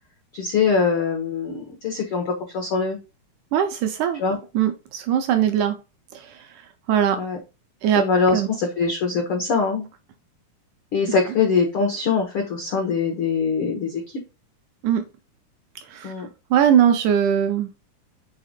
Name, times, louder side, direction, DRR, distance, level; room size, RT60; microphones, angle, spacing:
voice 1, 0.3-3.0 4.2-4.4 7.2-7.4 8.0-9.9 10.9-14.2 16.0-16.3, left 5 dB, 80° left, 3 dB, 1.2 m, -23 dB
voice 2, 3.5-4.2 4.6-5.7 6.9-7.2 7.8-8.0 8.3-8.5 14.8-15.0 15.9-16.1 16.5-17.7, right 9 dB, 80° right, 8 dB, 1.8 m, -20 dB
5.6 x 3.6 x 5.1 m, 0.29 s
omnidirectional pair, 4.1 m